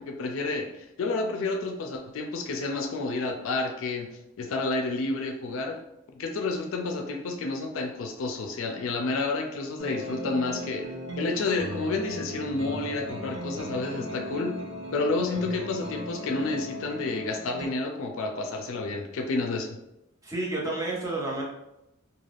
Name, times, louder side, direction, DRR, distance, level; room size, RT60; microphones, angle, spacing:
voice 1, 0.0-4.1 4.4-5.8 6.1-10.8 11.2-14.6 14.9-19.8, left 3 dB, 70° left, 4 dB, 0.4 m, -30 dB
sound 1, 9.8-17.7, equal, 65° right, 0.5 m, -37 dB
voice 2, 20.2-21.4, right 2 dB, 15° right, -4 dB, 0.6 m, -30 dB
2.4 x 2.3 x 3.3 m, 0.88 s
head